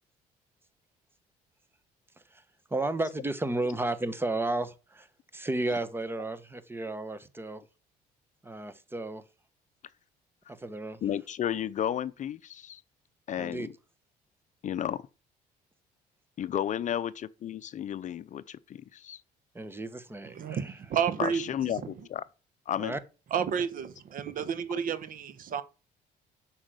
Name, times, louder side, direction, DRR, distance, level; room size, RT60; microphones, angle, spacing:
voice 1, 2.7-5.1 5.3-7.6 8.4-9.2 10.6-11.0 13.4-13.7 19.5-20.8 22.8-23.0, right 2 dB, 15° right, 1.2 m, -33 dB
voice 2, 11.0-12.8 13.3-13.7 14.6-15.1 16.4-19.2 21.2-22.2 22.7-22.9, left 10 dB, 45° left, 0.6 m, -32 dB
voice 3, 20.3-21.4 23.3-25.6, right 8 dB, 55° right, 1.2 m, -31 dB
8.0 x 6.3 x 8.0 m
cardioid pair, 110°, 17 cm